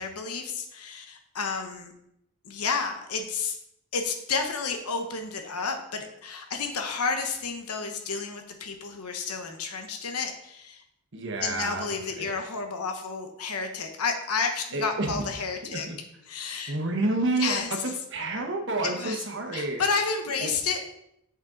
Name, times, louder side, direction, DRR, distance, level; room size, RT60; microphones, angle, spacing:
voice 1, 0.0-1.9 2.4-3.6 3.9-10.8 11.4-15.9 16.3-16.7 17.4-17.7 18.8-19.2 19.5-20.8, left 4 dB, 85° left, 5 dB, 1.0 m, -31 dB
voice 2, 11.1-11.9 12.2-12.3 14.7-15.2 15.6-16.0 16.7-17.8 18.1-19.8 20.4-20.5, right 2 dB, 55° right, 3 dB, 1.2 m, -29 dB
7.3 x 6.2 x 3.9 m, 0.77 s
head